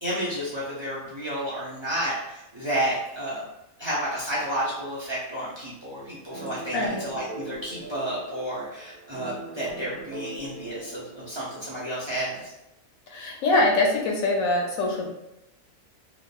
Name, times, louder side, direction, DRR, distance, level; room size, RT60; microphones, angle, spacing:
voice 1, 0.0-3.4 3.8-12.5, right 1 dB, 50° right, -8 dB, 0.3 m, -31 dB
sound 1, 6.3-12.0, right 3 dB, 90° right, 1.0 m, -41 dB
voice 2, 6.7-7.1 13.1-15.1, left 2 dB, 90° left, 0 dB, 1.0 m, -23 dB
2.8 x 2.0 x 2.3 m, 0.89 s
omnidirectional pair, 1.4 m